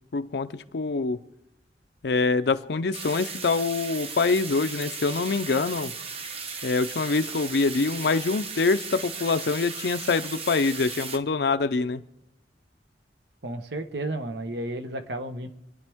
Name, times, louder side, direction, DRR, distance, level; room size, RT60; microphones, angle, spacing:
voice 1, 0.1-1.2 2.0-5.9 6.6-12.0, left 4 dB, 70° left, 10 dB, 0.5 m, -25 dB
sound 1, 2.9-11.2, right 5 dB, 35° right, 0.9 m, -36 dB
voice 2, 13.4-15.5, right 1 dB, 75° right, 8 dB, 1.1 m, -32 dB
28.0 x 10.0 x 3.6 m, 0.90 s
head